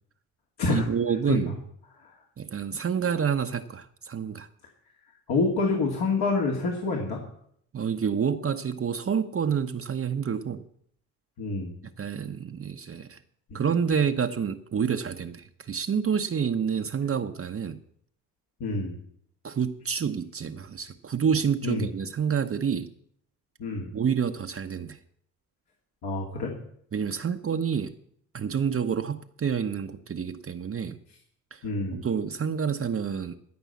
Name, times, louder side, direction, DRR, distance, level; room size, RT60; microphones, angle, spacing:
voice 1, 0.7-1.5 2.4-4.5 7.7-10.6 12.0-13.2 13.5-17.8 19.4-22.9 23.9-25.0 26.9-27.9 28.3-31.0 31.5-33.4, right 7 dB, 35° right, 7 dB, 0.9 m, -28 dB
voice 2, 5.3-7.2 11.4-11.7 13.5-13.6 18.6-19.0 21.6-21.9 23.6-23.9 26.0-26.5 31.6-32.0, left 3 dB, 65° left, -1 dB, 2.4 m, -27 dB
14.0 x 5.4 x 8.4 m, 0.67 s
hypercardioid pair, 55°, 41 cm